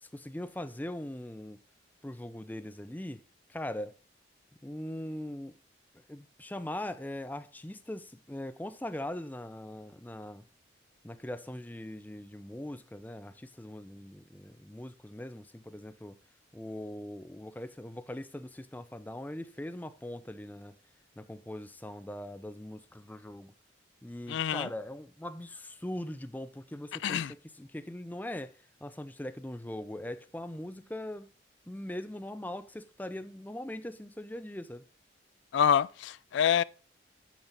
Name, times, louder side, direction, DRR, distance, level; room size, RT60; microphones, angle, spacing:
voice 1, 0.0-1.6 2.0-3.2 3.5-4.0 4.6-5.6 6.1-10.4 11.0-16.2 16.5-20.8 21.2-23.5 24.0-31.3 31.7-34.8, left 1 dB, 10° left, 0.5 m, -41 dB
voice 2, 24.3-24.7 27.0-27.3 35.5-36.6, left 8 dB, 75° left, 0.3 m, -26 dB
8.9 x 7.4 x 3.9 m
head